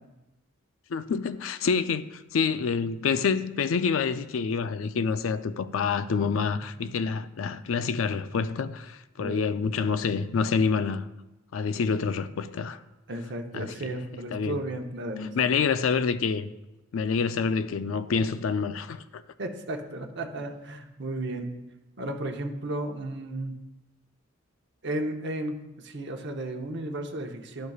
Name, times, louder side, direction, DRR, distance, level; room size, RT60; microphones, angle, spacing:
voice 1, 0.9-11.1 11.5-12.8 13.5-14.0 14.3-14.6 15.3-16.5 16.9-19.2, left 5 dB, 70° left, 0.4 m, -27 dB
voice 2, 13.1-15.5 19.4-21.5 22.0-23.5 24.8-27.7, right 1 dB, 55° right, 0.8 m, -34 dB
12.0 x 6.5 x 2.4 m
head